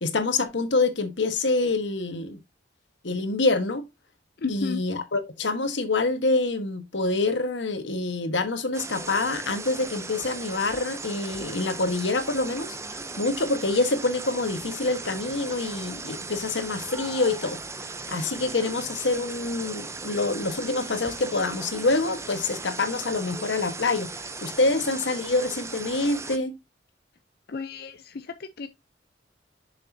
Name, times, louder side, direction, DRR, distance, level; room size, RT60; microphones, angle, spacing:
voice 1, 0.0-2.4 3.0-3.9 4.5-17.6 18.1-24.1 24.4-26.5, left 3 dB, 85° left, 1.3 m, -26 dB
voice 2, 4.4-4.8 27.5-28.7, left 5 dB, 60° left, 0.6 m, -33 dB
sound 1, 8.7-26.4, right 3 dB, 15° right, 0.6 m, -37 dB
7.1 x 6.5 x 2.7 m
head